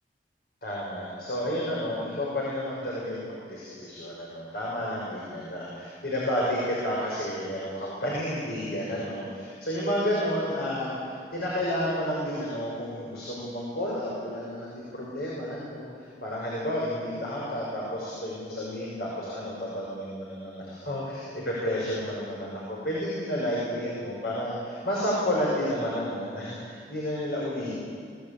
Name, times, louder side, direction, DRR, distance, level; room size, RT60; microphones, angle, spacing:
voice 1, 0.6-27.7, equal, 65° left, -6 dB, 6.3 m, -31 dB
24.0 x 18.5 x 8.8 m, 2.2 s
head